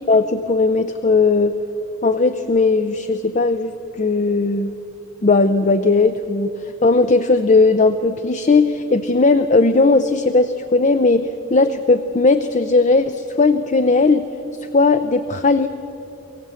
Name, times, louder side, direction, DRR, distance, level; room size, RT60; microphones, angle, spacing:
voice 1, 0.0-1.6 2.0-4.7 5.2-14.3 14.7-15.7, left 3 dB, 35° left, 10 dB, 0.5 m, -17 dB
24.0 x 16.0 x 8.2 m, 3.0 s
head